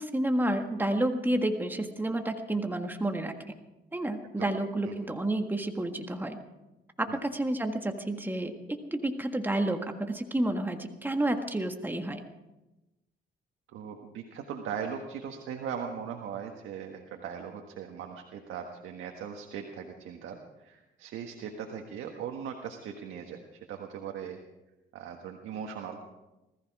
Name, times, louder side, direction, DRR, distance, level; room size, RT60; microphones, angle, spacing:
voice 1, 0.0-3.3 3.9-6.4 7.0-9.8 10.1-12.2, right 1 dB, 10° right, 5 dB, 1.6 m, -30 dB
voice 2, 13.7-24.4 24.9-26.1, right 7 dB, 85° right, 3 dB, 1.5 m, -39 dB
20.0 x 14.5 x 4.8 m, 1.0 s
cardioid pair, 90°, 20 cm